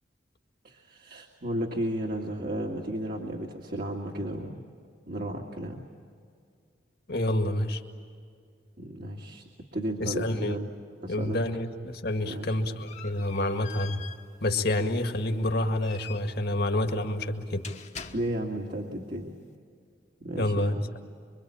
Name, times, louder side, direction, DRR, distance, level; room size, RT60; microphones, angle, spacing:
voice 1, 0.6-4.6 5.1-5.8 8.8-10.7 11.0-11.4 12.2-12.6 18.1-19.3 20.2-20.8, right 1 dB, 50° right, 0 dB, 2.2 m, -34 dB
voice 2, 7.1-7.8 10.0-10.6 11.1-14.0 14.4-17.6 20.4-21.0, left 1 dB, 60° left, 5 dB, 2.0 m, -28 dB
sound 1, 12.1-18.7, left 7 dB, 40° left, 1.4 m, -46 dB
26.0 x 24.0 x 8.7 m, 2.2 s
head